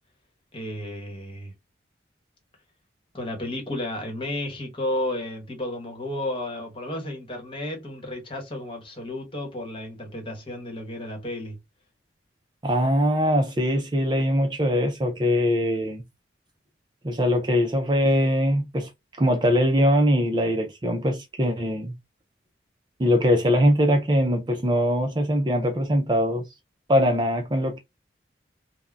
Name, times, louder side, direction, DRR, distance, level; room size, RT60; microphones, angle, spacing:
voice 1, 0.5-1.5 3.1-11.6, left 1 dB, 30° left, 1.1 m, -32 dB
voice 2, 12.6-16.0 17.0-18.9 19.2-21.9 23.0-26.4 26.9-27.8, equal, 25° right, 0.4 m, -22 dB
3.6 x 2.1 x 2.3 m
head